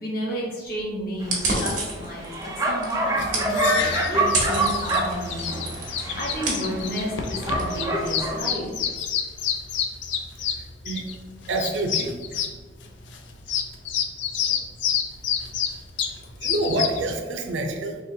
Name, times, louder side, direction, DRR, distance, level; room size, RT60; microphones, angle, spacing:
voice 1, 0.0-8.6, equal, 50° left, -3 dB, 0.9 m, -32 dB
Bark, 1.2-8.4, right 2 dB, 20° right, 0.5 m, -27 dB
sound 1, 1.2-8.9, right 2 dB, 45° right, 1.1 m, -32 dB
sound 2, 3.2-17.1, left 7 dB, 75° left, 0.4 m, -28 dB
voice 2, 10.5-11.1 11.5-12.1 16.4-18.0, right 2 dB, 85° right, 4 dB, 0.5 m, -27 dB
3.9 x 3.3 x 2.7 m, 1.4 s
head